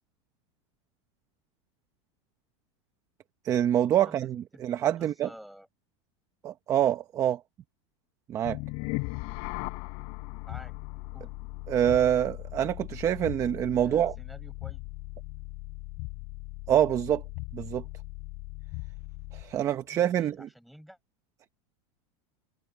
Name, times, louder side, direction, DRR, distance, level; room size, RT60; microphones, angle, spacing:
voice 1, 3.4-5.3 6.4-7.4 8.3-8.6 11.7-14.1 16.7-17.2 17.5-17.8 19.3-20.5, right 10 dB, 20° right, 0.8 m, -26 dB
voice 2, 4.1-5.7 10.5-10.7 11.1-11.3 13.8-14.8 19.9-21.0, equal, ahead, 7.3 m, -50 dB
sound 1, 8.4-19.6, left 31 dB, 45° left, 4.0 m, -38 dB
supercardioid pair, 165°, 15 cm